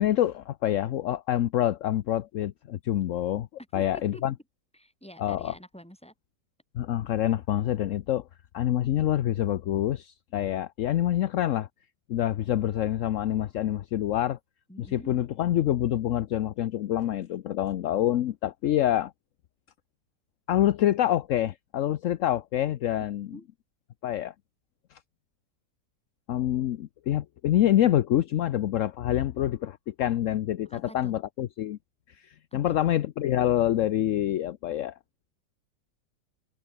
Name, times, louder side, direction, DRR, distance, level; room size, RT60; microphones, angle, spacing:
voice 1, 0.0-3.5 3.7-4.3 5.2-5.5 6.7-8.2 8.5-11.7 12.1-14.4 14.8-19.1 20.5-23.3 24.0-24.3 26.3-31.8 32.1-34.9, left 12 dB, 65° left, 0.8 m, -26 dB
voice 2, 3.7-4.2 4.7-6.1 14.7-15.2 23.0-23.1 23.3-23.5 30.6-31.1 32.5-32.8, equal, 5° left, 6.0 m, -47 dB
omnidirectional pair, 1.9 m